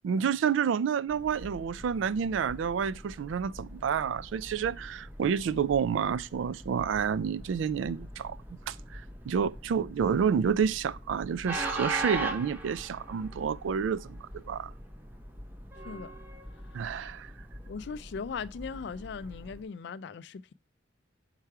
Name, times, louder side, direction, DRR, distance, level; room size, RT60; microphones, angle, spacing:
voice 1, 0.0-14.7 16.7-17.3, right 7 dB, 85° right, 0.3 m, -29 dB
Train, 1.1-19.6, right 1 dB, 10° right, 0.8 m, -42 dB
voice 2, 17.7-20.5, left 5 dB, 65° left, 0.3 m, -39 dB
5.7 x 4.6 x 4.7 m
head